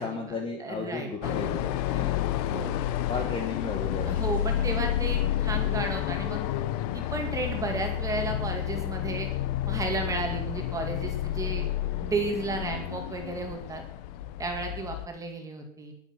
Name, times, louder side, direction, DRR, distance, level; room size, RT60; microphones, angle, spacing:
voice 1, 0.0-1.5 1.9-2.1 3.1-4.2, left 4 dB, 15° left, 2 dB, 1.4 m, -34 dB
voice 2, 0.6-2.1 2.5-2.8 4.1-6.4 6.9-9.3 9.7-11.7 12.0-13.8 14.4-15.9, right 2 dB, 10° right, 3 dB, 2.3 m, -33 dB
sound 1, 1.2-15.1, left 12 dB, 30° left, 0.7 m, -30 dB
21.0 x 7.3 x 5.8 m, 0.72 s
hypercardioid pair, 150°, 37 cm